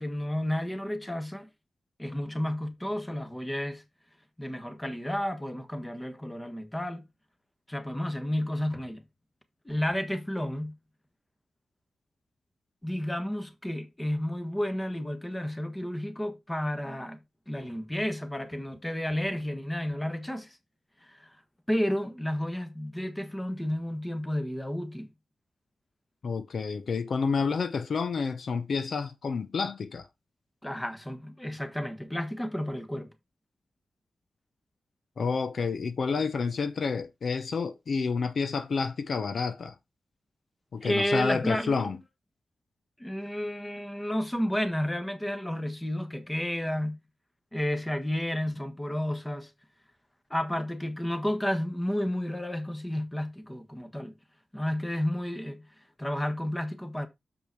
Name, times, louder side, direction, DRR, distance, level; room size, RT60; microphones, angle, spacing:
voice 1, 0.0-1.5 2.0-3.8 4.4-7.1 7.7-9.0 9.6-10.7 12.8-17.2 17.5-20.6 21.0-21.3 21.7-25.1 30.6-33.1 40.8-41.9 43.0-47.0 47.5-49.5 50.3-54.1 54.5-55.7 56.0-57.1, left 1 dB, 10° left, 1.5 m, -31 dB
voice 2, 26.2-30.1 35.2-39.7 40.7-42.0, left 5 dB, 70° left, 0.8 m, -29 dB
7.1 x 5.3 x 4.5 m
cardioid pair, 80°, 0 cm